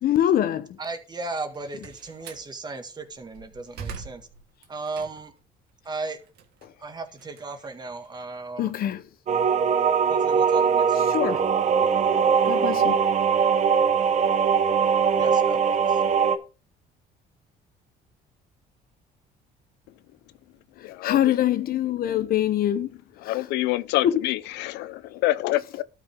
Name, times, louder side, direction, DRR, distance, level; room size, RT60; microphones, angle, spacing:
voice 1, 0.0-0.8 8.6-9.0 11.1-11.4 12.5-13.0 21.0-23.0 23.2-23.3 24.0-24.2, left 11 dB, 60° left, 1.0 m, -24 dB
voice 2, 0.8-4.3 4.7-5.3 5.8-6.2 6.8-8.7 10.1-11.0 15.2-15.6 15.9-16.0, right 3 dB, 25° right, 1.8 m, -35 dB
Slam, 1.4-2.5 3.1-5.4 5.8-8.2, right 6 dB, 75° right, 2.0 m, -43 dB
sound 1, 9.3-16.4, right 6 dB, 45° right, 1.1 m, -21 dB
voice 3, 20.8-22.2 23.2-25.8, left 16 dB, 90° left, 0.6 m, -28 dB
12.5 x 5.9 x 3.6 m
cardioid pair, 110°, 17 cm